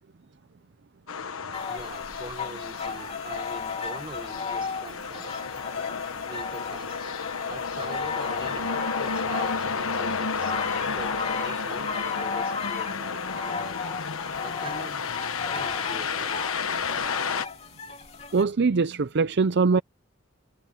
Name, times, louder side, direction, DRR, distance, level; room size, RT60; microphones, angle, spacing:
sound 1, 1.1-17.4, left 5 dB, 80° left, 1.2 m, -32 dB
sound 2, 1.5-18.4, left 5 dB, 30° left, 3.0 m, -35 dB
voice 1, 1.7-5.6 6.2-7.2 7.5-14.0 14.4-15.0 15.5-16.7, right 2 dB, 25° right, 3.8 m, -43 dB
voice 2, 18.3-19.8, right 4 dB, 50° right, 0.5 m, -22 dB
head